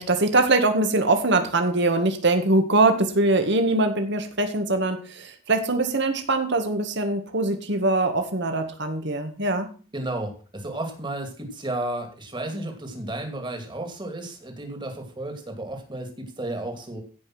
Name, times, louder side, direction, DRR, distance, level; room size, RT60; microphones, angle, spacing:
voice 1, 0.0-9.7, right 2 dB, 55° right, 7 dB, 1.8 m, -22 dB
voice 2, 9.9-17.0, right 1 dB, 20° right, 4 dB, 2.4 m, -33 dB
16.0 x 5.4 x 6.1 m, 0.39 s
head